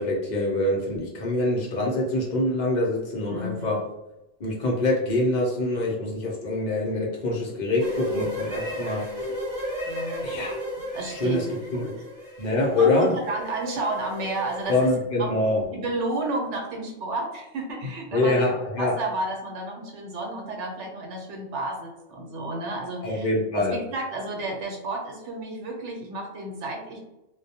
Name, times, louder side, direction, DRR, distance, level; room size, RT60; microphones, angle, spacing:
voice 1, 0.0-3.8 4.4-9.0 10.2-10.6 11.1-11.5 11.7-11.9 12.4-13.1 14.7-15.6 18.1-18.9 23.0-23.7, left 2 dB, 55° left, -2 dB, 0.5 m, -25 dB
voice 2, 3.3-3.8 9.8-10.3 10.9-11.9 12.8-14.9 15.2-15.3 15.7-27.0, right 2 dB, 75° right, 1 dB, 1.0 m, -32 dB
sound 1, 7.8-14.9, equal, 25° right, 0.5 m, -34 dB
2.2 x 2.1 x 2.7 m, 0.94 s
omnidirectional pair, 1.2 m